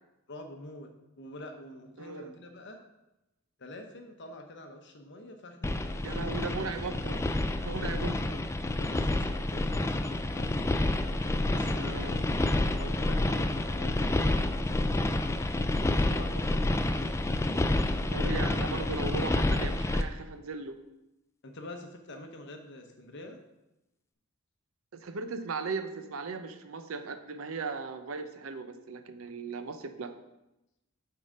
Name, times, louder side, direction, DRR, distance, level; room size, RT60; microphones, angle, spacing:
voice 1, 0.3-2.8 3.6-6.4 7.8-8.2 8.7-10.6 11.5-12.3 12.6-15.3 15.9-17.0 21.4-23.4, left 1 dB, 55° left, 4 dB, 1.0 m, -46 dB
voice 2, 2.0-2.3 6.0-7.3 7.6-8.4 11.8-12.2 18.1-20.8 24.9-30.1, right 4 dB, 70° right, 8 dB, 0.6 m, -37 dB
sound 1, 5.6-20.0, left 1 dB, 15° left, 0.3 m, -29 dB
7.8 x 3.8 x 5.1 m, 0.93 s
head